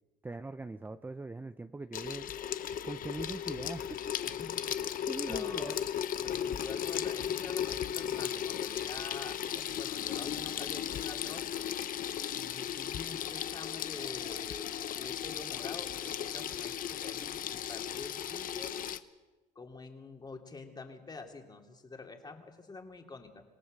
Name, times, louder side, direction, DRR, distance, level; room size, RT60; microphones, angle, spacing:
voice 1, 0.2-2.3 2.8-4.1 5.0-5.8, right 3 dB, 10° right, 10 dB, 0.6 m, -41 dB
Water tap faucet / Sink (filling or washing), 1.9-19.0, left 10 dB, 55° left, 1.0 m, -36 dB
voice 2, 4.3-4.6 5.2-5.8 6.2-11.6 12.3-18.8 19.5-23.4, left 3 dB, 25° left, 4 dB, 2.9 m, -46 dB
27.0 x 17.5 x 6.6 m, 1.2 s
cardioid pair, 110°, 17 cm